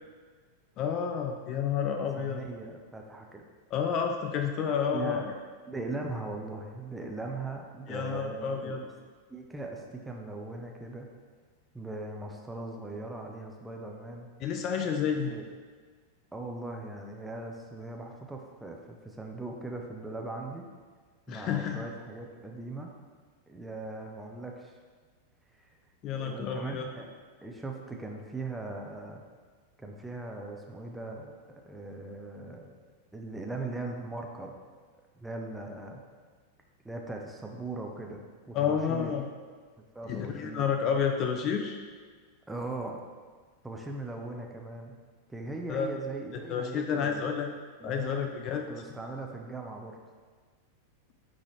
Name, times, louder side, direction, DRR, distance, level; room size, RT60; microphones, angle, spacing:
voice 1, 0.8-2.4 3.7-5.2 7.9-8.8 14.4-15.3 21.3-21.8 26.0-26.9 38.5-39.3 40.1-41.8 45.7-45.9 46.5-47.5 47.8-48.7, left 7 dB, 35° left, 4 dB, 0.5 m, -30 dB
voice 2, 2.2-3.4 4.9-5.3 5.7-8.7 9.3-11.1 11.7-14.3 15.1-15.4 16.3-20.7 21.3-22.9 23.5-24.8 25.5-25.7 26.2-29.2 29.8-31.3 31.6-32.8 33.1-34.5 35.2-36.0 36.8-39.1 39.8-40.7 42.5-43.0 43.6-45.0 45.3-47.3 47.8-48.2 48.7-50.0, right 2 dB, 5° right, 1 dB, 0.8 m, -39 dB
9.5 x 3.9 x 3.3 m, 1.5 s
figure-of-eight pair, 90°, 0 cm